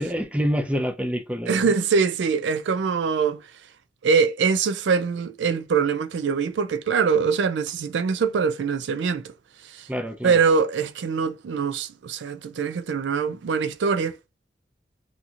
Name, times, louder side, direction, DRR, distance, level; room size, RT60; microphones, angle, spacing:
voice 1, 0.0-1.7 9.9-10.4, equal, 10° right, 0.5 m, -27 dB
voice 2, 1.5-3.4 4.0-9.3 9.6-9.9 10.2-14.2, right 5 dB, 90° right, 0.4 m, -23 dB
2.8 x 2.7 x 2.4 m
head